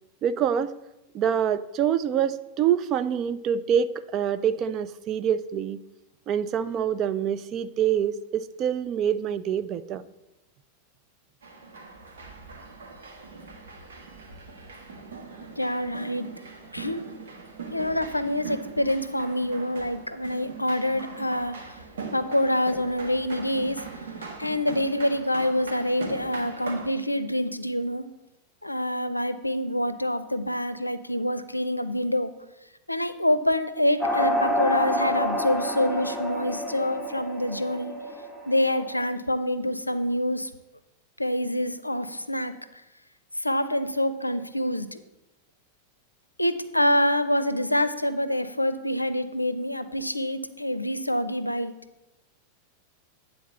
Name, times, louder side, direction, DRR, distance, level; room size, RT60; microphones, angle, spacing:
voice 1, 0.2-0.7 1.1-5.8 6.3-10.0, right 8 dB, 35° right, 13 dB, 0.4 m, -26 dB
sound 1, 11.4-26.9, right 4 dB, 65° right, 1.5 m, -41 dB
voice 2, 15.5-16.3 16.7-17.0 17.7-21.8 22.1-24.1 24.4-28.1 28.6-32.3 32.9-37.9 38.5-40.5 41.2-42.5 43.3-45.0 46.4-51.8, left 1 dB, 85° left, 12 dB, 0.5 m, -26 dB
sound 2, 34.0-39.0, equal, 5° right, 1.4 m, -28 dB
9.3 x 4.0 x 6.8 m, 0.96 s
figure-of-eight pair, 90°, 0 cm